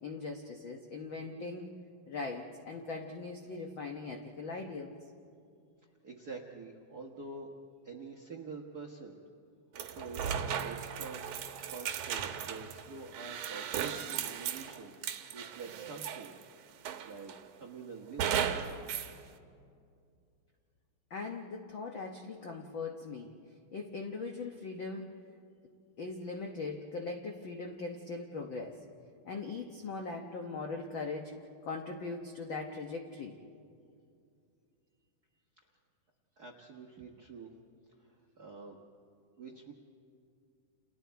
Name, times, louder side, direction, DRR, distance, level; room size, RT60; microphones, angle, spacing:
voice 1, 0.0-1.7 2.1-5.0 21.1-23.3 23.7-25.2 26.0-28.8 29.2-31.3 31.6-33.4, left 3 dB, 75° left, 3 dB, 1.1 m, -40 dB
voice 2, 6.0-7.5 7.8-9.2 9.7-11.3 11.7-16.3 17.0-18.3 35.6-35.7 36.4-37.5 38.0-38.8 39.4-39.7, right 4 dB, 50° right, 0 dB, 1.1 m, -47 dB
sound 1, 9.8-16.4 16.9-17.4 18.2-19.1, right 8 dB, 70° right, 2.3 m, -36 dB
30.0 x 28.5 x 4.6 m, 2.4 s
omnidirectional pair, 3.9 m